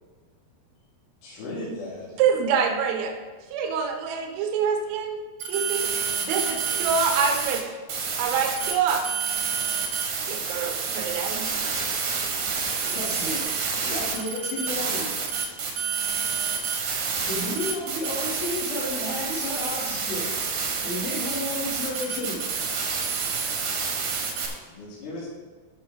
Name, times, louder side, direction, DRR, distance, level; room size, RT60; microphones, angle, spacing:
voice 1, 1.2-2.2 24.6-25.3, left 1 dB, 75° left, -9 dB, 5.4 m, -36 dB
voice 2, 2.2-3.2 3.5-5.9 6.2-7.7 8.2-9.0 10.3-11.5, right 6 dB, 85° right, 3 dB, 3.7 m, -26 dB
sound 1, 5.4-7.6 7.9-24.5, right 5 dB, 60° right, 2.2 m, -28 dB
voice 3, 12.8-13.5 13.8-15.1 17.2-20.4 20.8-22.4, left 2 dB, 60° left, -8 dB, 5.5 m, -32 dB
14.5 x 6.2 x 4.1 m, 1.5 s
omnidirectional pair, 5.7 m